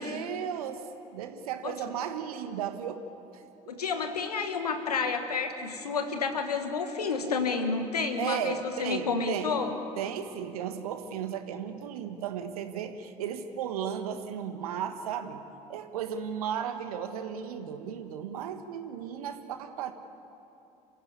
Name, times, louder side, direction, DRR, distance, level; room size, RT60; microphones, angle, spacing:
voice 1, 0.0-3.0 3.3-3.8 8.2-9.5 10.0-15.4 15.7-19.9, right 8 dB, 70° right, 8 dB, 1.5 m, -35 dB
voice 2, 3.7-9.7, left 4 dB, 80° left, 7 dB, 1.8 m, -30 dB
29.5 x 15.5 x 8.5 m, 2.9 s
figure-of-eight pair, 55°, 20 cm